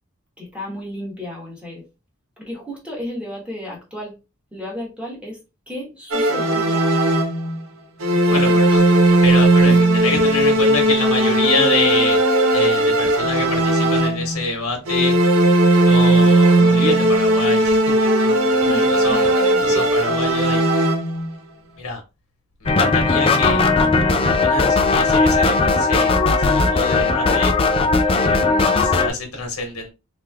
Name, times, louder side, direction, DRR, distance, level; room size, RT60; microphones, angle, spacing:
voice 1, 0.4-1.8 2.4-4.2 4.5-5.4 5.7-6.8 8.3-8.6 9.6-9.8 18.7-19.8 28.5-28.8, left 1 dB, 5° right, 1.2 m, -33 dB
sound 1, 6.1-7.6 8.0-14.4 14.9-21.3, right 1 dB, 70° right, 0.7 m, -17 dB
voice 2, 8.3-8.8 9.2-9.8 10.0-12.2 12.5-15.1 15.8-19.3 19.6-20.8 21.8-22.0 22.6-23.7 24.2-27.5 28.0-29.9, left 3 dB, 80° left, 1.2 m, -26 dB
sound 2, 22.7-29.1, left 3 dB, 25° left, 0.3 m, -17 dB
3.5 x 3.1 x 2.3 m
head